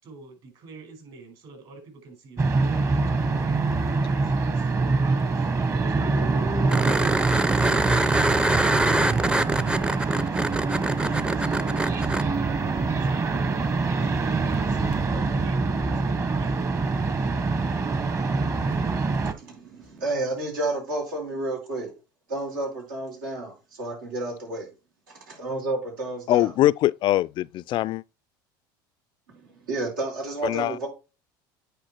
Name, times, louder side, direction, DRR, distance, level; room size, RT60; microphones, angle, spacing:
voice 1, 0.0-7.2 10.7-12.2 12.5-16.8, right 3 dB, 50° right, 5.2 m, -46 dB
sound 1, 2.4-19.3, right 3 dB, 30° right, 1.2 m, -25 dB
sound 2, 6.7-12.2 14.9-15.0, right 2 dB, 10° right, 0.6 m, -25 dB
voice 2, 17.8-21.9 22.3-24.7 25.1-26.5 29.3-30.9, right 2 dB, 90° right, 5.0 m, -32 dB
voice 3, 26.3-28.0 30.4-30.8, left 14 dB, 50° left, 0.4 m, -22 dB
9.2 x 4.8 x 4.4 m
supercardioid pair, 90°, 11 cm